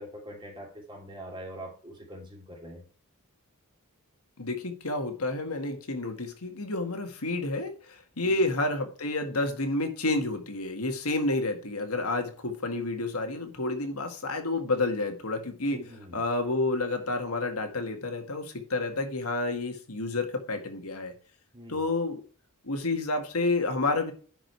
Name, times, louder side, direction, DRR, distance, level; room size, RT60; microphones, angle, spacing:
voice 1, 0.0-2.8 8.2-8.6 15.7-16.2 21.5-21.9, equal, 20° right, 0 dB, 3.0 m, -44 dB
voice 2, 4.4-15.8 16.1-21.1 21.7-22.2 22.6-24.1, left 2 dB, 90° left, 5 dB, 1.8 m, -30 dB
10.0 x 5.1 x 4.7 m, 0.40 s
head